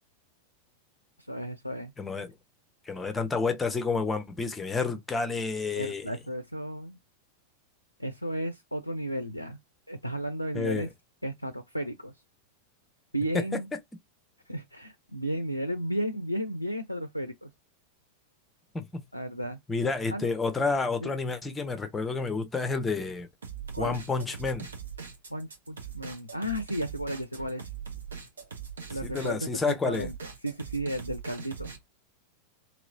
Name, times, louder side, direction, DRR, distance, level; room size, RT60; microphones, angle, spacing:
voice 1, 1.3-1.9 5.7-7.0 8.0-9.6 9.9-10.9 11.2-12.1 13.1-13.7 14.5-17.5 19.1-19.6 20.1-20.3 21.0-21.1 23.7-24.0 25.3-27.7 28.9-30.1 30.4-31.7, equal, 90° left, 0.4 m, -33 dB
voice 2, 2.0-2.3 2.9-6.1 10.5-10.9 13.3-13.4 18.7-19.0 19.7-23.3 23.8-24.7 29.0-30.1, left 4 dB, 15° left, 0.7 m, -30 dB
sound 1, 23.4-31.8, right 7 dB, 70° right, 1.0 m, -41 dB
3.0 x 2.9 x 2.6 m
figure-of-eight pair, 90°, 0 cm